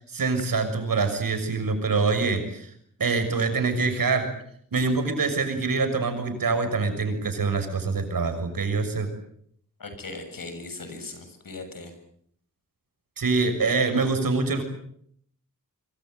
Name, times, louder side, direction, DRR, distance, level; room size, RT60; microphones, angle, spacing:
voice 1, 0.1-2.7 3.0-4.3 4.7-9.1 13.2-14.6, right 4 dB, 85° right, 7 dB, 6.4 m, -25 dB
voice 2, 9.8-11.9, left 3 dB, 85° left, 8 dB, 7.2 m, -38 dB
25.0 x 24.5 x 8.0 m, 0.66 s
wide cardioid pair, 80°, 33 cm